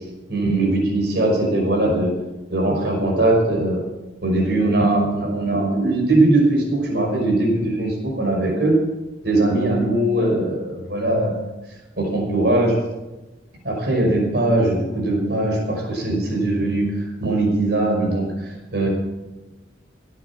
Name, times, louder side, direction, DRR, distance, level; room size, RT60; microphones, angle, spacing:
voice 1, 0.3-2.1 2.5-3.8 4.2-8.8 9.2-11.3 12.0-12.8 13.6-18.9, right 2 dB, 60° right, 0 dB, 5.6 m, -20 dB
17.5 x 9.2 x 7.2 m, 1.1 s
head